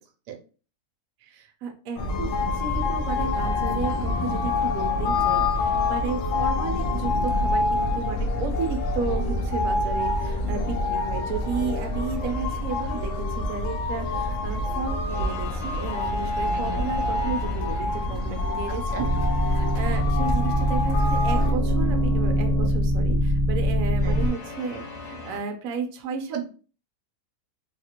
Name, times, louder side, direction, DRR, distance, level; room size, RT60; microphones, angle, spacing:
voice 1, 1.2-19.1 19.5-26.4, right 5 dB, 65° right, 5 dB, 1.0 m, -33 dB
sound 1, 2.0-21.5, left 2 dB, 65° left, 0.8 m, -26 dB
sound 2, 15.1-18.4 24.0-25.4, left 3 dB, 85° left, 1.3 m, -41 dB
voice 2, 16.5-16.9 18.9-19.1 19.8-20.1 24.0-24.2 26.3-26.4, right 8 dB, 85° right, 5 dB, 1.2 m, -33 dB
sound 3, 19.0-24.3, equal, 40° right, 0.6 m, -23 dB
3.4 x 2.4 x 2.8 m, 0.37 s
omnidirectional pair, 1.7 m